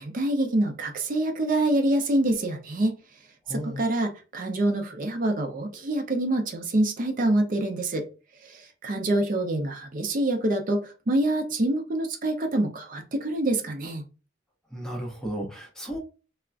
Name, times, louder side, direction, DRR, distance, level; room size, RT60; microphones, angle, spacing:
voice 1, 0.0-3.0 3.5-8.0 8.4-14.0, right 1 dB, 45° right, 0.5 m, -26 dB
voice 2, 3.5-3.8 14.7-16.0, right 1 dB, 5° left, 0.6 m, -34 dB
3.4 x 2.1 x 2.4 m
head